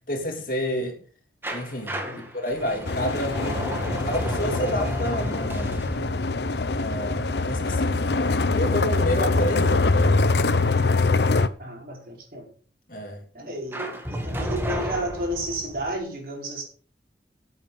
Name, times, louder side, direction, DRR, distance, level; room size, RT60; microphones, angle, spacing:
voice 1, 0.1-0.9 1.5-2.0 2.3-5.9 6.7-10.2 12.9-13.2, equal, 50° left, 3.1 m, -30 dB
sound 1, 1.4-8.2 13.7-15.9, equal, 15° right, 1.9 m, -32 dB
sound 2, 2.9-11.5, left 3 dB, 75° left, 0.8 m, -23 dB
voice 2, 11.6-12.4 13.3-16.6, right 1 dB, 55° right, 4.8 m, -32 dB
13.5 x 8.3 x 5.4 m
head